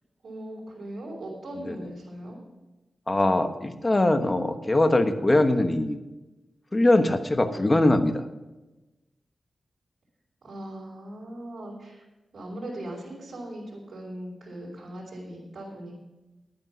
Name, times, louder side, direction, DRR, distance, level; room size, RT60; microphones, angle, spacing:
voice 1, 0.2-2.4 10.4-12.0 12.3-15.9, right 1 dB, 60° right, -7 dB, 4.8 m, -39 dB
voice 2, 3.1-6.0 6.7-8.2, left 1 dB, 25° left, 8 dB, 1.2 m, -22 dB
11.0 x 9.4 x 6.0 m, 1.1 s
wide cardioid pair, 90°, 0 cm